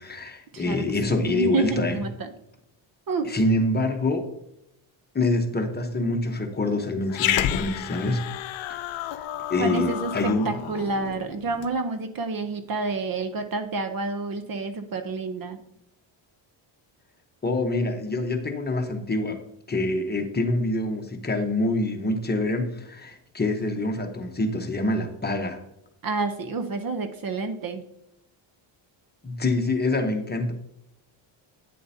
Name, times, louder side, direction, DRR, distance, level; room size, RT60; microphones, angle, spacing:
voice 1, 0.0-2.0 3.2-4.3 5.1-8.3 8.7-10.5 17.4-19.4 19.7-25.6 29.2-30.5, left 2 dB, 20° left, 4 dB, 0.9 m, -26 dB
voice 2, 1.2-2.3 3.1-3.3 9.6-10.1 10.4-15.6 26.0-27.8, right 4 dB, 45° right, 8 dB, 0.8 m, -29 dB
Growling, 7.1-11.7, left 12 dB, 65° left, 0.6 m, -30 dB
9.4 x 7.5 x 2.7 m, 0.79 s
cardioid pair, 130°, 49 cm